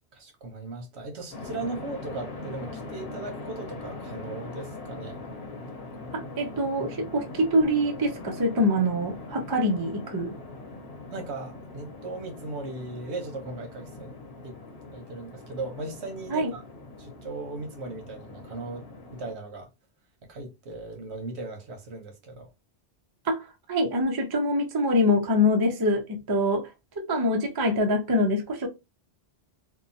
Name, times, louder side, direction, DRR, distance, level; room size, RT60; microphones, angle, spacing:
voice 1, 0.1-5.2 6.0-6.1 11.1-14.1 14.4-14.6 14.9-16.6 17.0-18.8 19.1-19.7 20.3-22.5, right 2 dB, 75° right, 1.1 m, -37 dB
sound 1, 1.3-19.4, left 2 dB, 65° left, 1.0 m, -41 dB
voice 2, 6.1-10.3 16.3-16.5 23.3-26.7 27.0-28.7, left 1 dB, 30° right, 0.4 m, -25 dB
2.8 x 2.2 x 2.6 m
omnidirectional pair, 1.1 m